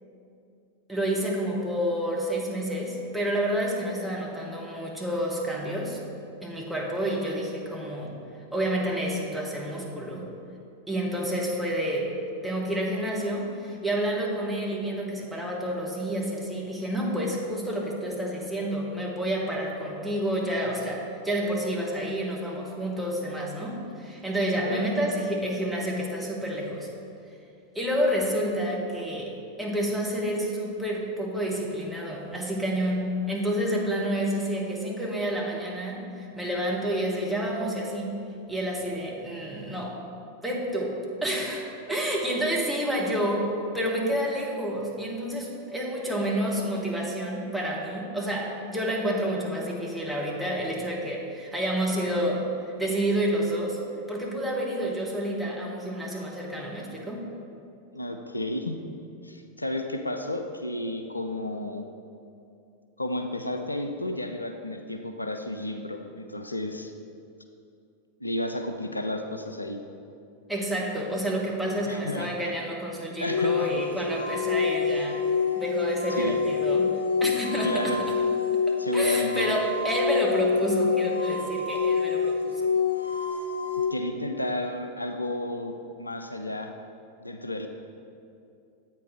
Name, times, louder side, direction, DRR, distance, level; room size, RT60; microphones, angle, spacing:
voice 1, 0.9-6.0 6.4-8.1 8.5-10.3 10.9-12.1 12.4-26.9 27.7-38.2 38.5-40.0 40.4-53.8 54.1-57.3 70.5-75.2 75.6-76.9 77.2-78.1 78.7-82.7, right 1 dB, 5° right, -3 dB, 1.2 m, -29 dB
voice 2, 57.9-58.7 59.2-61.9 63.0-66.9 68.2-69.8 71.8-72.5 73.2-73.8 76.2-76.4 77.6-78.0 78.8-79.5 83.9-86.7 87.2-87.7, left 1 dB, 85° left, 5 dB, 0.4 m, -32 dB
sound 1, 73.3-83.9, left 5 dB, 85° right, 0.9 m, -26 dB
7.9 x 4.5 x 4.5 m, 2.6 s
figure-of-eight pair, 90°, 0 cm